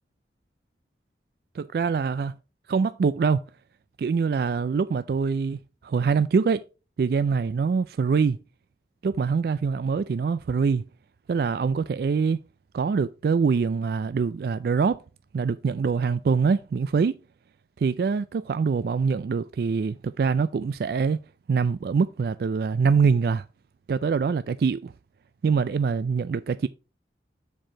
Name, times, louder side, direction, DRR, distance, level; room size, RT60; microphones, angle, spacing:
voice 1, 1.5-2.4 2.7-3.4 4.0-6.6 7.0-8.4 9.0-10.9 11.3-12.4 12.7-15.0 15.3-17.2 17.8-21.2 21.5-23.4 23.9-24.9 25.4-26.7, right 5 dB, 55° right, 0.3 m, -24 dB
7.5 x 4.6 x 4.4 m
head